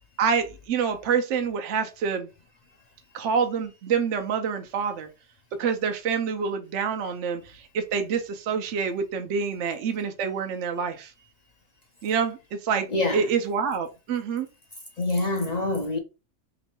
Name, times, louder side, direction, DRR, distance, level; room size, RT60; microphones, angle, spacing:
voice 1, 0.2-2.3 3.1-5.1 5.6-11.1 12.0-12.9 13.1-14.5, right 6 dB, 70° right, 0.9 m, -27 dB
voice 2, 12.9-13.4 15.0-16.0, left 2 dB, 50° left, 0.5 m, -26 dB
3.1 x 3.0 x 4.3 m
omnidirectional pair, 1.4 m